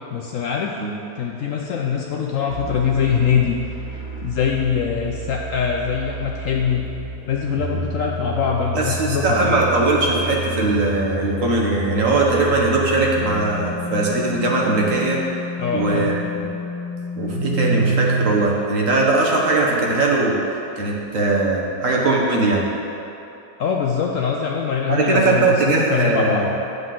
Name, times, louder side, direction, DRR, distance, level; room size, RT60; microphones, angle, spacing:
voice 1, 0.1-0.9 1.2-3.6 3.9-6.9 7.3-9.6 15.6-16.1 23.6-26.5, left 7 dB, 70° left, 0 dB, 0.8 m, -23 dB
sound 1, 2.5-18.3, right 1 dB, 70° right, 2.5 m, -29 dB
voice 2, 8.7-15.2 15.7-16.5 17.2-20.4 20.8-22.6 24.9-26.4, right 3 dB, 55° right, -2 dB, 1.3 m, -20 dB
9.6 x 6.5 x 3.7 m, 2.9 s
omnidirectional pair, 1.8 m